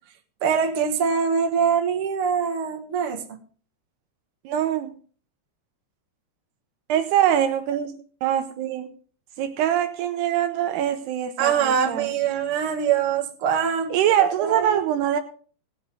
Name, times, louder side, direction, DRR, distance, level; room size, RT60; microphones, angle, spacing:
voice 1, 0.4-3.4 11.4-14.8, right 7 dB, 60° right, 3 dB, 1.5 m, -23 dB
voice 2, 4.5-4.9 6.9-7.9 8.2-8.9 9.4-12.1 13.9-15.2, right 10 dB, 80° right, 8 dB, 2.6 m, -23 dB
18.0 x 8.2 x 3.7 m, 0.41 s
omnidirectional pair, 5.1 m